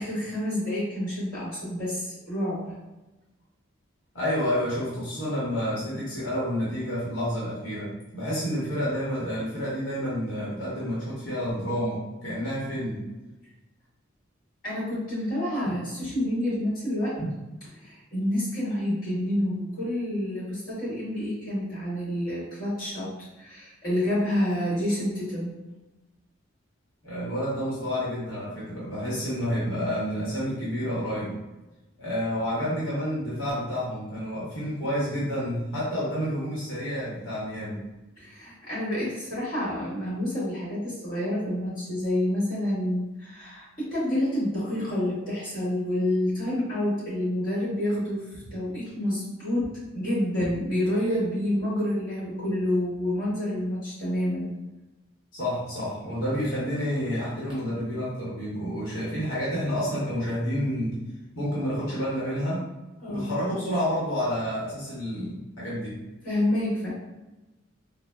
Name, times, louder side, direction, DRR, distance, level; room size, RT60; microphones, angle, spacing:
voice 1, 0.0-2.8 14.6-17.2 17.7-25.5 38.2-54.5 63.0-63.3 66.2-66.9, left 1 dB, 45° left, -8 dB, 1.5 m, -28 dB
voice 2, 4.1-13.0 27.0-31.4 32.0-37.8 55.3-61.0 61.3-62.7 63.1-66.0, equal, 85° left, -8 dB, 1.0 m, -29 dB
3.8 x 2.1 x 2.2 m, 1.1 s
head